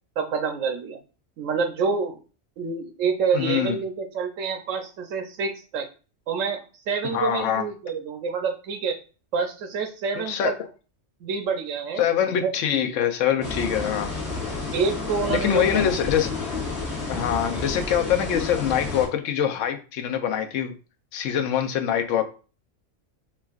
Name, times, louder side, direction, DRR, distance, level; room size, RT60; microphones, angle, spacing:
voice 1, 0.2-1.0 1.4-2.2 2.6-5.9 6.3-8.9 9.3-10.5 11.2-12.0 12.4-12.5 14.7-16.2, right 5 dB, 75° right, 5 dB, 1.0 m, -27 dB
voice 2, 3.3-3.8 7.0-7.6 10.2-10.5 12.0-14.1 15.3-16.3 17.1-20.7 21.1-22.3, left 9 dB, 75° left, 6 dB, 0.9 m, -24 dB
sound 1, 13.4-19.1, left 3 dB, 45° left, 1.4 m, -30 dB
4.3 x 2.3 x 2.3 m, 0.35 s
omnidirectional pair, 1.3 m